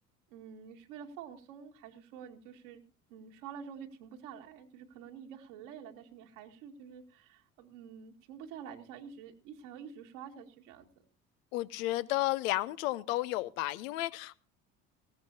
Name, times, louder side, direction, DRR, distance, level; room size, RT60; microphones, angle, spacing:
voice 1, 0.3-2.8 3.1-10.9, right 7 dB, 70° right, 4 dB, 2.2 m, -48 dB
voice 2, 11.5-14.4, left 17 dB, 70° left, 16 dB, 0.9 m, -32 dB
19.0 x 16.5 x 2.7 m, 0.34 s
hypercardioid pair, 60°, 41 cm